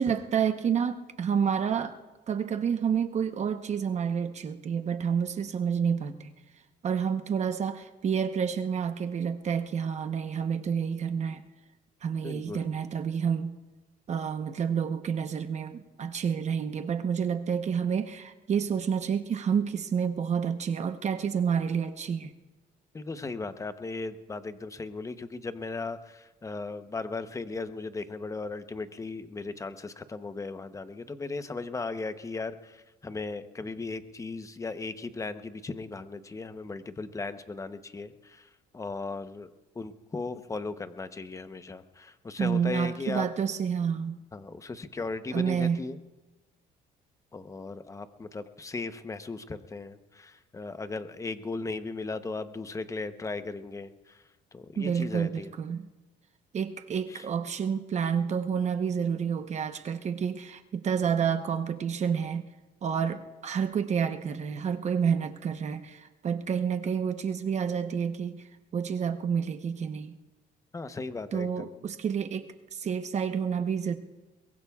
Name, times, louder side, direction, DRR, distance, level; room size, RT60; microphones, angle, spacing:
voice 1, 0.0-2.0 2.3-6.3 6.8-11.4 12.0-13.5 14.1-22.3 42.4-44.2 45.3-45.8 54.8-55.9 56.5-62.5 62.8-68.4 68.7-70.2 71.3-73.9, right 7 dB, 40° right, 8 dB, 1.0 m, -29 dB
voice 2, 12.2-12.7 22.9-39.5 39.7-43.3 44.3-46.0 47.3-54.2 54.5-55.5 57.1-57.2 70.7-71.7, left 3 dB, 20° left, 10 dB, 0.9 m, -37 dB
22.5 x 21.5 x 2.4 m, 1.1 s
cardioid pair, 110°, 17 cm